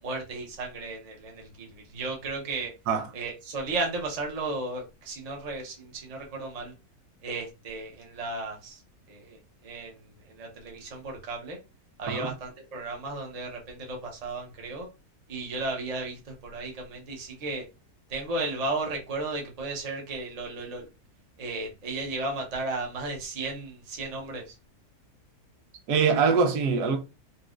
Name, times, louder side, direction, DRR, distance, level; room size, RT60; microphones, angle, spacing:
voice 1, 0.0-2.7 3.1-6.7 7.2-8.8 9.1-9.9 10.3-11.6 12.0-14.9 15.3-17.7 18.1-20.9 21.4-24.5, right 2 dB, 35° right, 0.7 m, -34 dB
voice 2, 25.9-27.0, right 5 dB, 85° right, 1.2 m, -23 dB
4.1 x 2.2 x 2.4 m
omnidirectional pair, 1.6 m